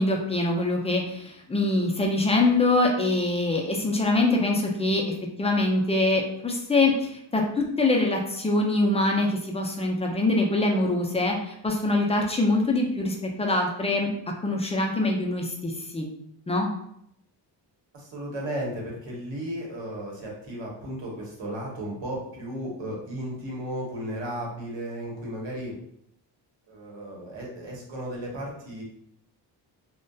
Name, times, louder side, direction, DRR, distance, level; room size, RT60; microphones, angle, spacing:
voice 1, 0.0-5.0 5.4-14.1 14.4-16.1 16.5-16.7, left 2 dB, 15° left, 0 dB, 0.3 m, -24 dB
voice 2, 17.9-25.8 26.7-28.8, right 1 dB, 85° right, -2 dB, 0.9 m, -34 dB
2.6 x 2.1 x 2.2 m, 0.74 s
cardioid pair, 105°, 44 cm